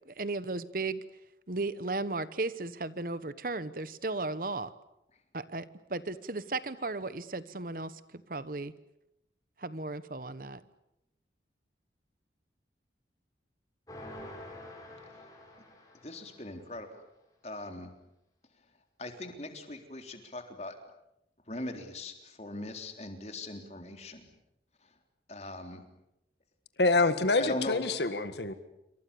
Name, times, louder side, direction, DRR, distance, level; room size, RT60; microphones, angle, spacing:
voice 1, 0.1-1.0 1.5-4.7 5.3-8.0 8.3-8.7 9.6-10.6, right 3 dB, 50° right, 15 dB, 1.1 m, -35 dB
sound 1, 13.9-16.6, left 1 dB, 20° left, 7.0 m, -47 dB
voice 2, 16.0-16.9 17.4-17.9 19.0-20.7 21.5-24.3 25.3-25.8 27.3-27.9, left 1 dB, 35° left, 5 dB, 3.6 m, -40 dB
voice 3, 26.8-28.5, left 3 dB, 70° left, 11 dB, 1.8 m, -26 dB
28.0 x 25.5 x 7.0 m, 0.84 s
head